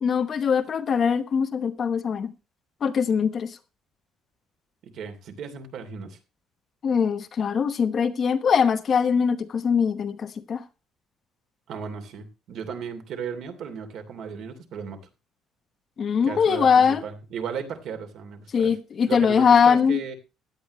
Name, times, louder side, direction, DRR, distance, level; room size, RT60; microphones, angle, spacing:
voice 1, 0.0-2.3 2.8-3.5 6.8-10.6 16.0-17.0 18.5-20.0, left 6 dB, 30° left, 1.0 m, -22 dB
voice 2, 4.9-6.2 11.7-15.0 16.2-18.8 19.0-20.2, right 6 dB, 50° right, 2.9 m, -35 dB
16.5 x 11.5 x 3.1 m
cardioid pair, 180°, 0 cm